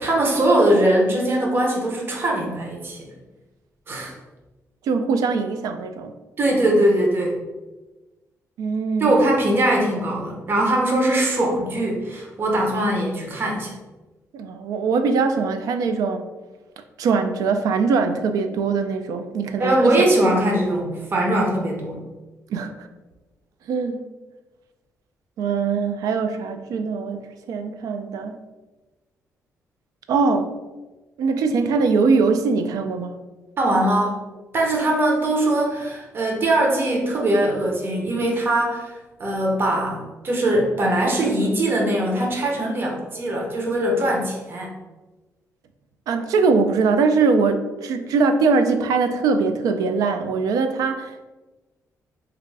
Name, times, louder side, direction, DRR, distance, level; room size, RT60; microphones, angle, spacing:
voice 1, 0.0-3.1 3.9-4.1 6.4-7.4 9.0-13.7 19.6-22.0 33.6-34.2 34.5-40.0 40.2-44.7, right 1 dB, 40° right, -1 dB, 0.7 m, -21 dB
voice 2, 4.9-6.1 8.6-9.1 14.3-16.3 17.0-20.0 20.4-20.5 22.5-22.9 23.7-24.0 25.4-27.2 27.5-28.3 30.1-30.5 31.2-33.2 46.1-51.3, right 4 dB, 85° right, 8 dB, 0.3 m, -22 dB
3.3 x 2.4 x 3.2 m, 1.1 s
cardioid pair, 115°, 6 cm